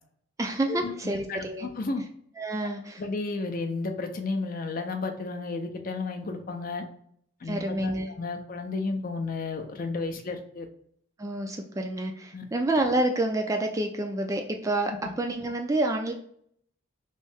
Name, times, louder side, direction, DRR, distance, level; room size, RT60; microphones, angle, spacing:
voice 1, 0.4-1.7 2.4-3.0 7.4-8.1 11.2-16.1, right 2 dB, 15° right, 3 dB, 0.3 m, -28 dB
voice 2, 1.3-2.0 3.0-6.8 7.4-7.9 8.2-10.7 12.3-12.4, left 3 dB, 45° left, 5 dB, 0.5 m, -32 dB
3.1 x 2.7 x 3.4 m, 0.67 s
head